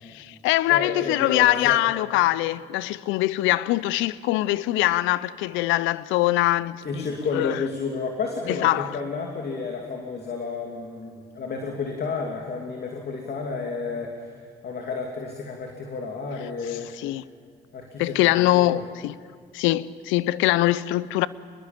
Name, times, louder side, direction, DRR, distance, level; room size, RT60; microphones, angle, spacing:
voice 1, 0.1-7.1 7.3-7.6 8.5-8.9 16.7-17.2 18.0-19.2 19.5-21.3, left 16 dB, 80° left, 0.6 m, -23 dB
voice 2, 0.7-1.8 6.8-14.3 14.6-16.9 17.7-18.2 18.4-18.8, left 4 dB, 55° left, 2.8 m, -31 dB
25.0 x 21.0 x 7.4 m
hypercardioid pair, 55°, 20 cm